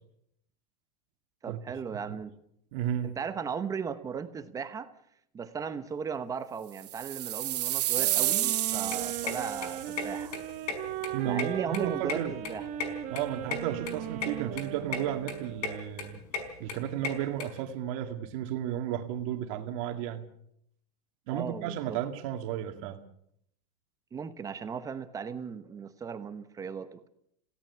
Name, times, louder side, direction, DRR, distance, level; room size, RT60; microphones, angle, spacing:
voice 1, 1.4-2.3 3.0-4.9 5.3-10.4 11.2-12.6 21.3-22.0 24.1-27.1, right 6 dB, 15° right, 11 dB, 1.0 m, -37 dB
voice 2, 2.7-3.1 11.1-12.4 13.1-16.2 16.6-20.2 21.3-23.0, right 11 dB, 55° right, 6 dB, 2.2 m, -33 dB
sound 1, 6.8-10.0, right 14 dB, 85° right, 2.1 m, -30 dB
sound 2, 8.0-15.9, right 12 dB, 35° right, 2.2 m, -38 dB
sound 3, 8.7-17.4, left 5 dB, 75° left, 5.0 m, -37 dB
27.5 x 17.0 x 6.9 m, 0.74 s
supercardioid pair, 155°, 20 cm